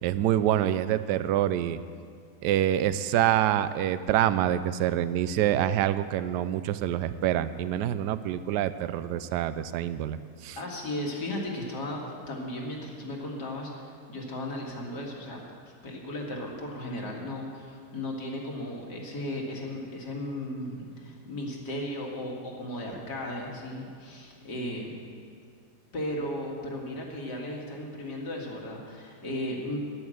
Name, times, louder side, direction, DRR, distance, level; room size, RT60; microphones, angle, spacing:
voice 1, 0.0-1.8 2.4-10.2 10.4-10.6, right 11 dB, 80° right, 14 dB, 1.2 m, -26 dB
voice 2, 10.6-15.4 15.8-24.9 25.9-29.8, left 1 dB, 75° left, -1 dB, 2.7 m, -35 dB
12.0 x 11.0 x 7.8 m, 2.2 s
omnidirectional pair, 1.8 m